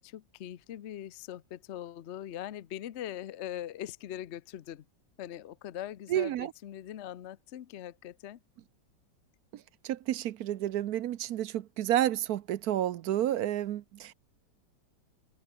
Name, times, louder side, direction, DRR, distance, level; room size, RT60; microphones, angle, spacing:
voice 1, 0.0-4.8 5.2-8.4, left 11 dB, 60° left, 0.7 m, -41 dB
voice 2, 6.1-6.5 9.5-14.1, right 12 dB, 65° right, 1.1 m, -30 dB
omnidirectional pair, 1.9 m